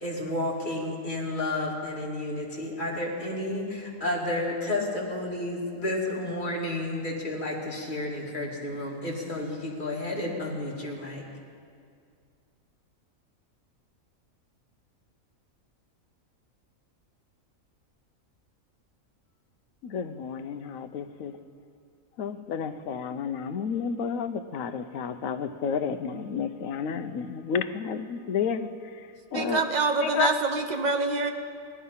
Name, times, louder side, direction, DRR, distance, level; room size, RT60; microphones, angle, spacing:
voice 1, 0.0-11.2, left 1 dB, 35° left, 2.5 m, -31 dB
voice 2, 19.8-21.3 22.2-28.7 29.3-29.6 30.0-30.3, left 7 dB, 80° left, 1.1 m, -31 dB
voice 3, 29.3-31.3, right 3 dB, 35° right, 1.0 m, -26 dB
17.5 x 11.0 x 5.5 m
omnidirectional pair, 1.4 m